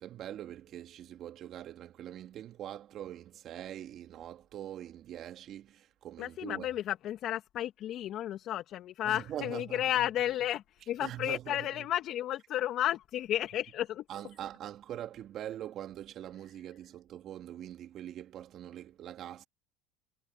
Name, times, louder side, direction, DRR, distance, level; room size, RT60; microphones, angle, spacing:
voice 1, 0.0-6.7 9.0-9.8 11.0-11.7 14.1-19.4, right 11 dB, 50° right, 2.3 m, -43 dB
voice 2, 6.2-14.0, left 12 dB, 50° left, 2.3 m, -33 dB
hypercardioid pair, 90°, 0 cm